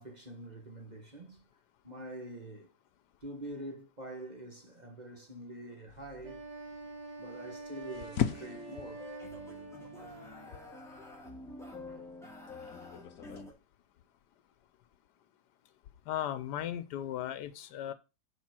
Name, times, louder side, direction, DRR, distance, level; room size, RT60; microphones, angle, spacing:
voice 1, 0.0-1.4 1.8-2.7 3.2-6.4 7.2-9.3 11.6-12.3, right 1 dB, 30° right, 1.4 m, -46 dB
sound 1, 5.9-13.4, left 9 dB, 65° left, 1.1 m, -41 dB
Wind instrument woodwind instrument, 6.2-10.5, right 3 dB, 80° right, 3.3 m, -46 dB
sound 2, 8.3-13.5, left 2 dB, ahead, 2.8 m, -48 dB
voice 2, 16.1-17.9, left 11 dB, 85° left, 1.3 m, -36 dB
7.3 x 4.8 x 6.0 m
omnidirectional pair, 1.8 m